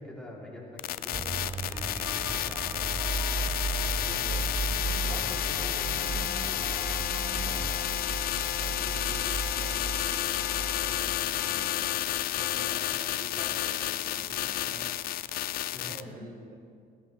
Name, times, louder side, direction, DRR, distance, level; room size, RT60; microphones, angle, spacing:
voice 1, 0.0-2.8 3.6-4.4 5.0-6.0 7.4-7.7 15.7-16.1, left 1 dB, 5° left, -5 dB, 3.5 m, -45 dB
sound 1, 0.8-16.0, left 13 dB, 60° left, 0.4 m, -31 dB
sound 2, 1.1-12.1, right 4 dB, 15° right, 0.3 m, -35 dB
voice 2, 2.9-3.2 4.1-4.3 5.1-6.8 8.5-10.5 10.8-12.0 12.3-15.1 15.9-16.6, right 2 dB, 55° right, 1 dB, 1.6 m, -48 dB
sound 3, 8.5-14.9, left 4 dB, 35° left, 3.0 m, -48 dB
20.0 x 13.5 x 3.4 m, 2.3 s
cardioid pair, 110°, 17 cm